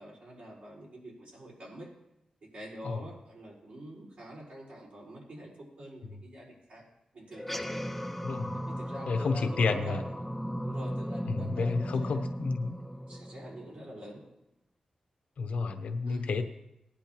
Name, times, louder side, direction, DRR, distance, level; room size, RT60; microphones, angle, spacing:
voice 1, 0.0-1.9 2.4-5.5 5.8-6.8 7.1-7.9 8.5-10.1 10.6-12.3 13.1-14.2 16.0-16.3, equal, 80° right, -4 dB, 4.7 m, -46 dB
sound 1, 7.3-14.0, equal, 5° left, 0.4 m, -36 dB
voice 2, 8.2-8.5 9.1-10.0 11.3-12.7 15.4-16.4, left 4 dB, 80° left, 7 dB, 0.9 m, -30 dB
18.5 x 10.0 x 3.0 m, 0.86 s
wide cardioid pair, 135°, 2 cm